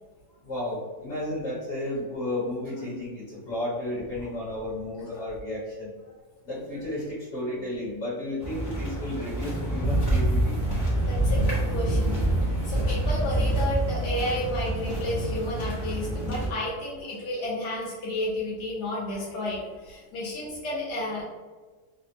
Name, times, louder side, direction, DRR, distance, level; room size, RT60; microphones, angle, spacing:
voice 1, 0.4-5.9 6.4-10.6, left 1 dB, 55° left, -8 dB, 1.2 m, -33 dB
sound 1, 8.4-16.5, right 1 dB, 15° left, 0.6 m, -26 dB
voice 2, 11.1-12.3 12.6-21.2, left 1 dB, 80° left, -5 dB, 1.2 m, -32 dB
3.3 x 2.0 x 2.6 m, 1.3 s
omnidirectional pair, 1.8 m